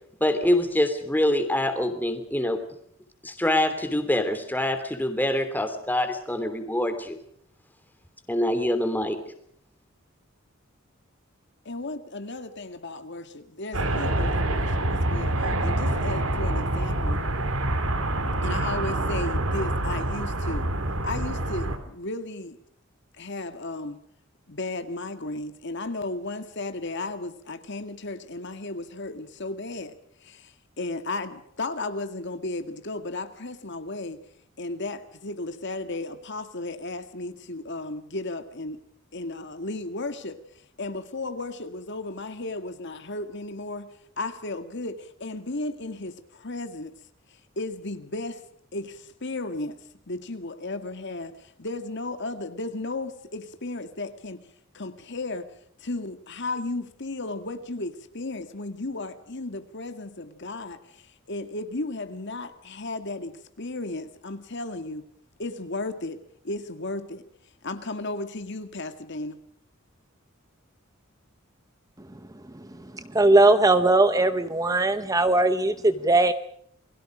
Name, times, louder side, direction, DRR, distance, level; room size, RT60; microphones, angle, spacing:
voice 1, 0.2-2.6 3.2-7.2 8.3-9.2, left 1 dB, 10° left, 8 dB, 3.1 m, -25 dB
voice 2, 11.7-17.2 18.4-20.7 21.0-22.6 23.2-24.0 24.5-30.0 30.2-34.2 34.6-38.8 39.1-40.4 40.8-43.9 44.2-46.9 47.6-48.4 48.7-49.8 50.1-54.4 54.7-55.5 55.8-65.0 65.4-66.2 66.4-67.2 67.6-69.4, left 2 dB, 60° left, 8 dB, 2.0 m, -34 dB
sound 1, 13.7-21.8, right 1 dB, 90° right, 3.2 m, -26 dB
voice 3, 72.9-76.3, right 2 dB, 15° right, 11 dB, 0.9 m, -19 dB
29.0 x 21.5 x 5.1 m, 0.67 s
head